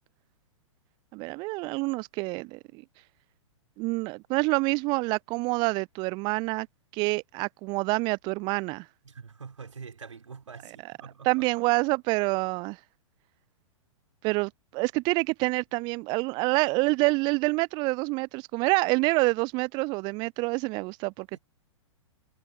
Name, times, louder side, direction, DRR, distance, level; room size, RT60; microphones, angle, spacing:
voice 1, 1.1-2.8 3.8-6.7 6.9-8.9 11.3-12.8 14.2-21.4, right 26 dB, 25° right, 0.5 m, -27 dB
voice 2, 9.0-11.5 21.3-21.4, right 5 dB, 70° right, 5.8 m, -45 dB
figure-of-eight pair, 105°, 17 cm